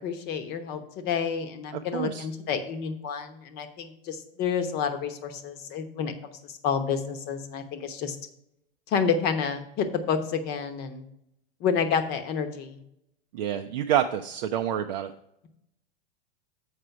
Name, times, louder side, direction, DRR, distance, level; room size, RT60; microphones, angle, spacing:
voice 1, 0.0-8.2 8.9-11.0 11.6-12.8, left 6 dB, 35° left, 8 dB, 1.0 m, -29 dB
voice 2, 1.7-2.3 13.3-15.1, right 10 dB, 50° right, 5 dB, 0.5 m, -28 dB
7.3 x 4.9 x 5.8 m, 0.77 s
figure-of-eight pair, 95°, 29 cm